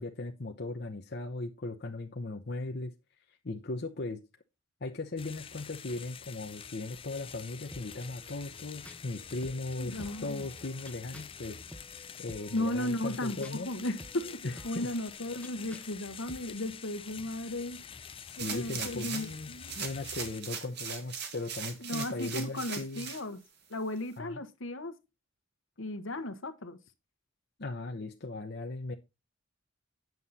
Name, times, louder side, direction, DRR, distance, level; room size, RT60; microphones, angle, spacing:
voice 1, 0.0-2.9 3.3-4.2 4.8-11.6 12.2-13.7 14.4-14.9 18.3-23.1 24.2-24.4 27.6-28.9, left 2 dB, 55° left, 0.9 m, -38 dB
sound 1, 5.2-20.4, left 7 dB, 25° left, 0.5 m, -47 dB
sound 2, 7.7-16.7, equal, 5° left, 0.9 m, -52 dB
voice 2, 9.8-10.5 12.5-17.8 18.4-19.8 21.8-23.4 23.7-24.9 25.8-26.8, left 1 dB, 75° left, 1.3 m, -35 dB
sound 3, 18.4-19.4 19.7-23.2 23.7-23.8, right 6 dB, 55° right, 1.9 m, -39 dB
9.4 x 7.3 x 4.1 m
head